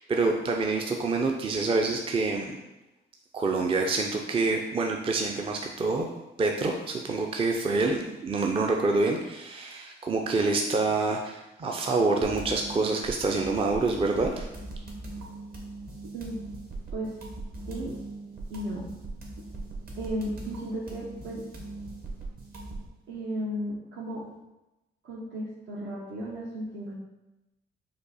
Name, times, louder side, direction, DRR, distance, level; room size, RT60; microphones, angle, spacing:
voice 1, 0.0-2.5 3.3-6.1 6.4-14.5, right 3 dB, 30° right, 2 dB, 0.4 m, -27 dB
sound 1, 12.2-22.9, right 2 dB, 50° right, 1.2 m, -40 dB
voice 2, 18.5-18.9 20.0-21.4 23.1-24.2 25.0-26.9, right 1 dB, 65° right, -5 dB, 0.9 m, -34 dB
5.2 x 2.2 x 4.1 m, 0.98 s
cardioid pair, 90°, 20 cm